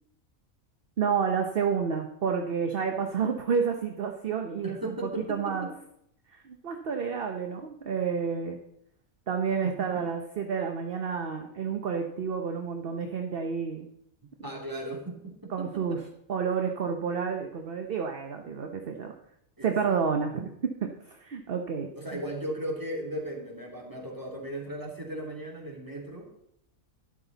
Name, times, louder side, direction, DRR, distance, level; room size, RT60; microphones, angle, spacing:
voice 1, 1.0-5.7 6.3-8.6 9.3-13.9 15.5-16.0 16.3-19.1 19.6-22.2, right 6 dB, 50° right, 4 dB, 1.0 m, -30 dB
voice 2, 4.6-5.7 9.6-10.0 14.4-16.0 19.6-20.0 22.0-26.5, right 1 dB, 15° right, -1 dB, 2.8 m, -37 dB
12.5 x 11.0 x 4.0 m, 0.76 s
omnidirectional pair, 1.4 m